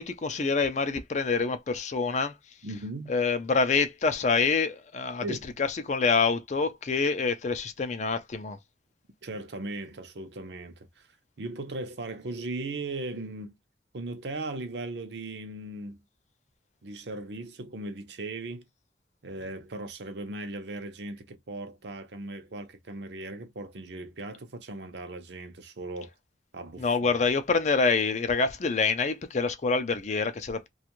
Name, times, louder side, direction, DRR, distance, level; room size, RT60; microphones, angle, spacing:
voice 1, 0.0-2.3 3.1-8.6 26.8-30.7, left 4 dB, 40° left, 0.4 m, -26 dB
voice 2, 2.6-3.2 5.2-5.5 9.2-11.1 11.4-13.5 13.9-16.0 16.8-18.6 19.2-26.1 26.5-27.1, right 2 dB, 70° right, 0.6 m, -38 dB
2.5 x 2.3 x 2.9 m
head